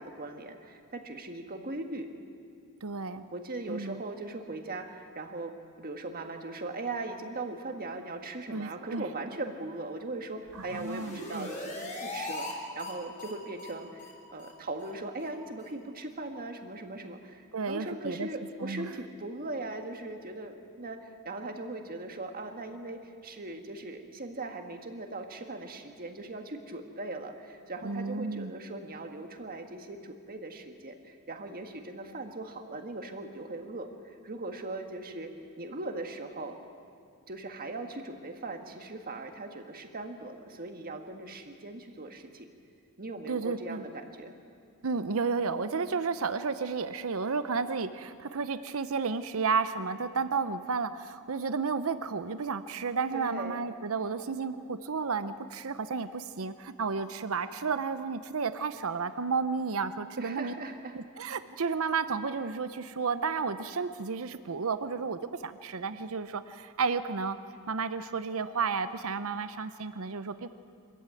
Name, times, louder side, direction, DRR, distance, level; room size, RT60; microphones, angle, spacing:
voice 1, 0.0-2.1 3.3-36.6 37.3-42.5 43.0-44.3 53.1-53.6 60.2-60.9, right 2 dB, 40° right, 5 dB, 1.7 m, -39 dB
voice 2, 2.8-3.2 3.7-4.0 8.5-9.1 10.5-11.5 17.5-18.3 18.6-18.9 27.8-28.5 43.3-43.8 44.8-60.5 60.9-67.4 67.7-70.5, right 5 dB, 65° right, 11 dB, 0.7 m, -32 dB
sound 1, 10.5-12.5 12.8-12.9 13.2-13.3 13.6-13.7 14.0-14.1 14.4-14.5 14.8-14.9 15.2-15.3 15.6-15.7, left 2 dB, 35° left, 3.6 m, -40 dB
24.5 x 14.0 x 9.2 m, 2.3 s
head